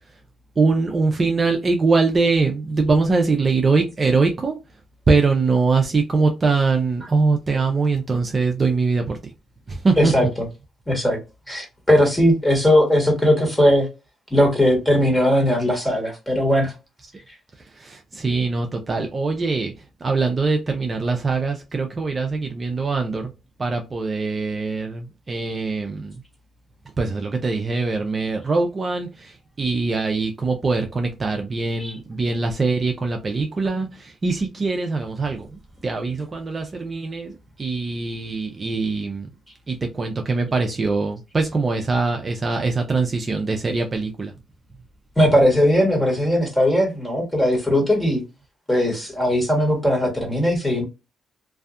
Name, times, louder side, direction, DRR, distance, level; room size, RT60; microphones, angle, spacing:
voice 1, 0.6-4.6 5.1-9.2 9.7-10.1 17.8-19.7 20.0-23.3 23.6-26.2 27.0-35.5 35.8-37.3 37.6-39.3 39.7-44.3, right 4 dB, 35° right, 0.4 m, -22 dB
voice 2, 10.0-10.3 10.9-11.2 11.5-13.9 14.3-16.7 31.8-32.0 45.2-48.2 48.7-50.8, equal, 10° left, 1.3 m, -18 dB
2.6 x 2.3 x 2.4 m
cardioid pair, 90°, 0 cm